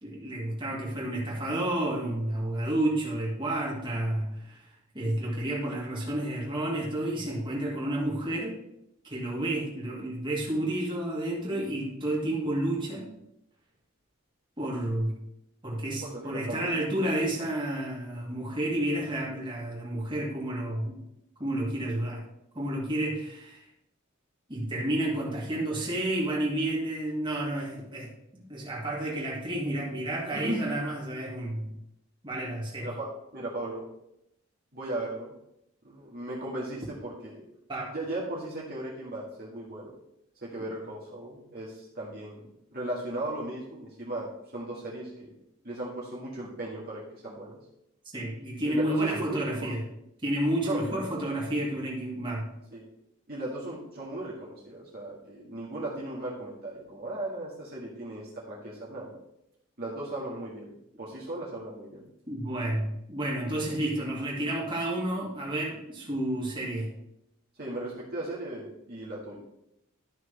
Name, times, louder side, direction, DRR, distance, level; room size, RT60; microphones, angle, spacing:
voice 1, 0.0-4.6 4.9-8.6 9.0-13.1 14.6-15.2 15.6-20.9 21.4-22.2 22.5-23.7 24.5-31.7 32.2-32.9 37.7-37.9 48.1-49.8 50.2-52.5 62.3-66.9, right 1 dB, 25° right, -4 dB, 2.4 m, -30 dB
voice 2, 16.0-16.7 30.3-30.6 32.8-33.1 33.3-33.8 34.7-35.3 35.8-37.4 37.9-39.9 40.4-45.4 45.6-47.6 48.6-49.7 50.6-51.0 52.7-52.9 53.3-59.2 59.8-62.1 67.6-69.4, right 1 dB, 45° right, -5 dB, 2.0 m, -37 dB
12.5 x 6.0 x 3.4 m, 0.80 s
head